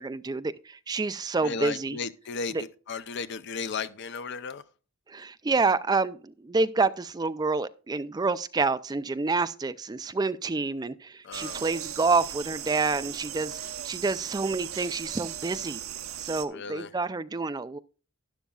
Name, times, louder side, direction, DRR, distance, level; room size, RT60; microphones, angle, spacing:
voice 1, 0.0-2.0 2.5-2.6 5.1-15.8 16.2-17.8, right 3 dB, 20° right, 0.4 m, -28 dB
voice 2, 1.4-4.6 11.2-11.6 16.5-16.9, left 5 dB, 55° left, 0.6 m, -35 dB
sound 1, 11.3-16.5, right 10 dB, 75° right, 0.8 m, -38 dB
12.5 x 10.5 x 2.3 m
head